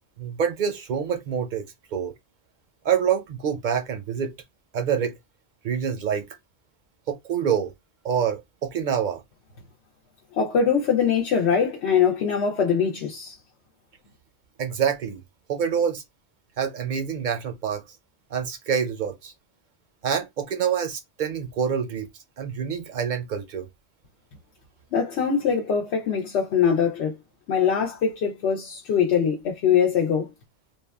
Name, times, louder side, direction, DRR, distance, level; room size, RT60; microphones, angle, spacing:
voice 1, 0.2-1.7 1.9-2.1 2.8-4.4 4.7-5.1 5.6-6.3 7.1-7.7 8.0-9.2 14.6-15.2 15.5-16.0 16.6-17.8 18.3-19.3 20.0-22.1 22.4-23.7, right 7 dB, 60° right, 0.5 m, -26 dB
voice 2, 10.3-13.3 24.9-27.1 27.5-30.3, left 7 dB, 85° left, 0.9 m, -22 dB
3.4 x 2.2 x 2.2 m
omnidirectional pair, 1.1 m